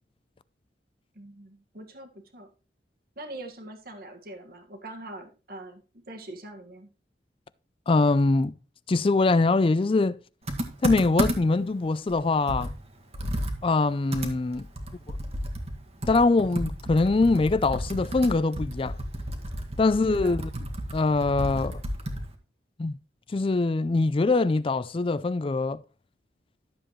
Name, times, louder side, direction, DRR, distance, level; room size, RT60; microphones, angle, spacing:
voice 1, 1.2-2.5 3.2-5.8 6.1-6.9 20.1-20.4, right 1 dB, 55° right, 1.8 m, -43 dB
voice 2, 7.9-8.5 8.9-10.2 10.8-12.7 13.6-14.7 15.1-15.2 16.1-19.0 19.8-20.5 20.9-21.8 22.8-22.9 23.3-25.8, left 3 dB, 30° left, 0.4 m, -23 dB
Computer keyboard, 10.5-11.6 12.1-12.2 12.5-22.3, equal, 35° right, 1.7 m, -32 dB
12.5 x 7.6 x 3.1 m
head